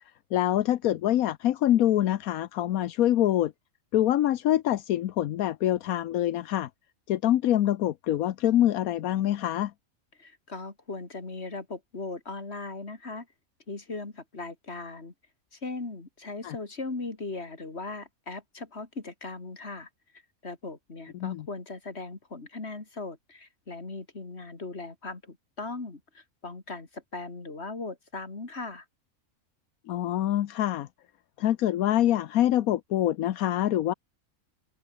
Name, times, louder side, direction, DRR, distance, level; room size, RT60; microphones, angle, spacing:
voice 1, 0.3-3.5 3.9-6.7 7.1-9.7 16.4-16.6 21.1-21.5 29.9-30.9 31.4-33.9, left 12 dB, 80° left, 1.2 m, -25 dB
voice 2, 10.2-13.3 13.7-15.1 15.5-19.9 20.4-28.8, left 3 dB, 50° left, 3.3 m, -38 dB
open air
omnidirectional pair, 1.5 m